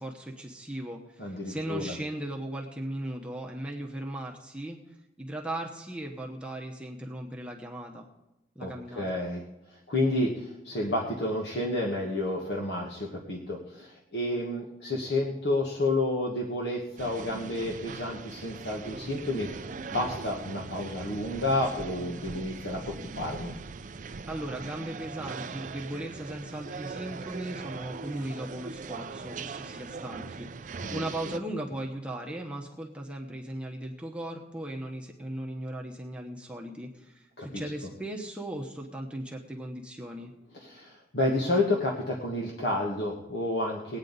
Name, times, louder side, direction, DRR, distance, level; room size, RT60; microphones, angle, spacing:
voice 1, 0.0-4.8 5.2-8.1 8.5-9.1 24.3-40.3, right 1 dB, 5° right, -1 dB, 0.9 m, -37 dB
voice 2, 1.2-2.0 8.6-23.5 30.8-31.0 37.4-37.9 40.5-44.0, left 1 dB, 65° left, -2 dB, 1.4 m, -30 dB
sound 1, 17.0-31.4, right 4 dB, 45° right, 0.4 m, -40 dB
20.0 x 8.9 x 4.0 m, 1.0 s
head